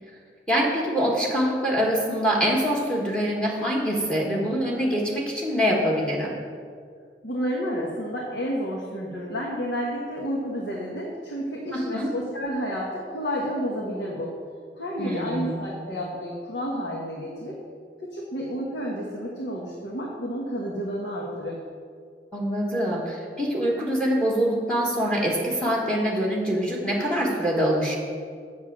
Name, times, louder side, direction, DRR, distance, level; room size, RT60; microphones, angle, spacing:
voice 1, 0.5-6.3 11.7-12.1 15.0-15.6 22.3-28.0, equal, 5° left, -2 dB, 1.5 m, -24 dB
voice 2, 7.2-14.3 14.8-17.6 18.1-21.6, equal, 85° left, -3 dB, 1.3 m, -30 dB
7.9 x 6.8 x 7.4 m, 2.1 s
head